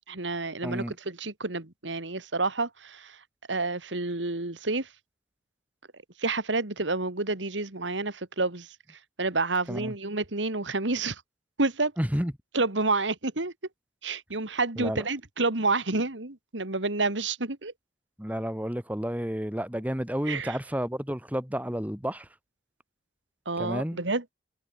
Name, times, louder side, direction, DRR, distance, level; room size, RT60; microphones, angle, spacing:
voice 1, 0.1-4.9 6.2-11.2 11.6-11.9 12.5-13.5 14.0-17.7 20.3-20.6 23.5-24.2, right 3 dB, 90° right, 2.3 m, -29 dB
voice 2, 0.6-1.0 9.7-9.9 12.0-12.3 14.8-15.0 18.2-22.3 23.6-24.0, equal, 10° right, 1.9 m, -31 dB
head